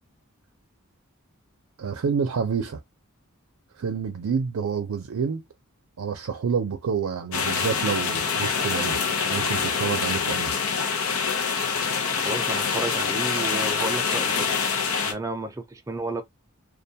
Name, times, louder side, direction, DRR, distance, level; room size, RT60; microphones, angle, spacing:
voice 1, 1.8-2.8 3.8-5.4 6.0-9.0 9.3-10.5, right 6 dB, 90° right, 0.5 m, -28 dB
sound 1, 7.3-15.1, left 5 dB, 90° left, 0.7 m, -25 dB
voice 2, 12.2-14.5 15.0-16.2, right 2 dB, 15° right, 0.5 m, -32 dB
2.4 x 2.2 x 2.7 m
head